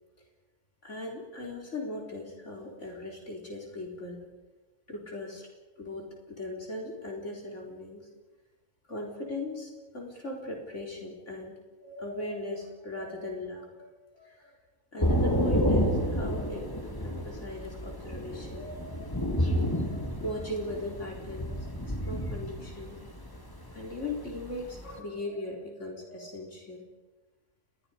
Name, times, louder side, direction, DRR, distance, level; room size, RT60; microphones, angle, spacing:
voice 1, 0.8-4.3 4.9-5.5 5.8-8.1 8.9-14.6 14.9-16.7 17.0-19.1 19.8-23.0 23.7-26.9, left 1 dB, 55° left, -1 dB, 4.4 m, -39 dB
Thunder / Rain, 15.0-25.0, equal, 15° left, 2.2 m, -30 dB
29.5 x 22.0 x 5.1 m, 1.2 s
omnidirectional pair, 1.5 m